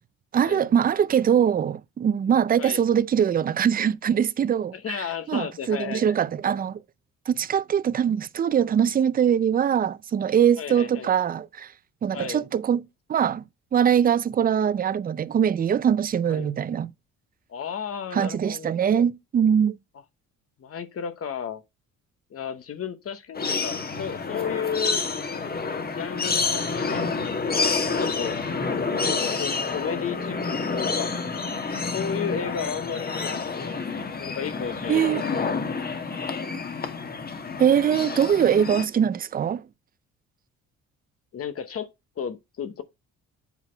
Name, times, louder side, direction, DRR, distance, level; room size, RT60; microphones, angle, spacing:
voice 1, 0.3-6.8 7.3-11.7 12.0-12.8 13.1-13.4 13.7-16.9 18.1-19.8 34.9-35.3 37.6-39.7, right 8 dB, 30° right, 0.4 m, -22 dB
voice 2, 4.7-6.2 10.6-11.1 12.1-12.4 16.3-16.5 17.5-19.0 20.6-21.6 22.3-25.0 25.9-28.3 29.1-31.1 31.9-33.8 34.2-36.5 41.3-41.9 42.2-42.8, left 7 dB, 50° left, 1.0 m, -34 dB
sound 1, 23.3-38.9, left 4 dB, 30° left, 1.3 m, -28 dB
8.1 x 4.1 x 4.4 m
cardioid pair, 90°, 30 cm